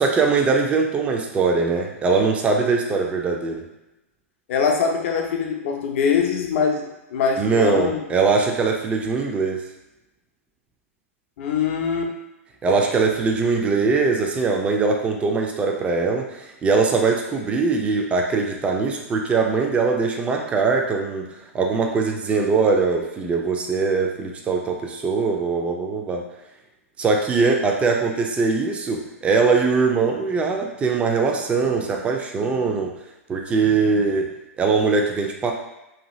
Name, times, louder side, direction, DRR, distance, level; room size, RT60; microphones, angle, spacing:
voice 1, 0.0-3.6 7.4-9.6 12.6-26.2 27.0-32.9 33.3-34.3 34.6-35.5, right 4 dB, 15° right, 2 dB, 0.4 m, -21 dB
voice 2, 4.5-8.0 11.4-12.1 12.7-12.8, left 6 dB, 55° left, 1 dB, 0.6 m, -23 dB
2.7 x 2.4 x 3.0 m, 0.96 s
hypercardioid pair, 115°, 8 cm